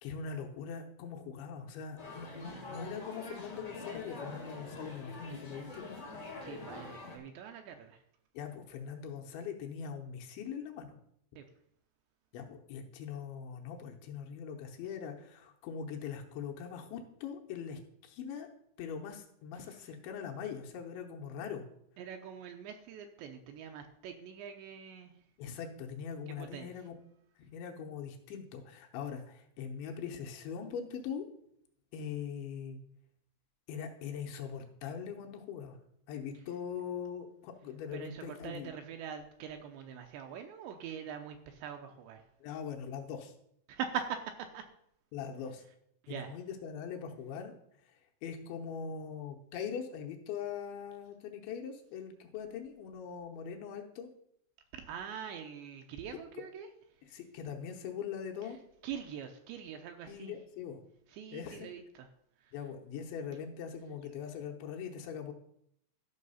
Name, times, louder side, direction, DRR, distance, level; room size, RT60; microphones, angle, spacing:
voice 1, 0.0-6.0 8.3-10.9 12.3-18.5 18.8-21.7 25.4-26.9 27.5-31.3 31.9-32.8 33.7-35.8 36.1-38.7 42.4-43.3 45.1-45.6 46.1-47.5 48.2-54.1 57.1-58.6 60.1-60.8 61.3-61.7 62.5-65.3, left 7 dB, 75° left, 3 dB, 3.1 m, -41 dB
sound 1, 2.0-7.2, left 2 dB, 55° left, 0.9 m, -45 dB
voice 2, 6.4-8.0 11.4-11.5 19.6-19.9 22.0-25.1 26.3-26.7 37.9-42.2 43.7-44.6 46.0-46.4 54.7-56.7 57.1-57.2 58.4-58.6 58.8-60.4 61.1-62.1 62.4-62.5, right 8 dB, 80° right, 5 dB, 2.7 m, -43 dB
13.0 x 5.9 x 5.6 m, 0.72 s
omnidirectional pair, 5.6 m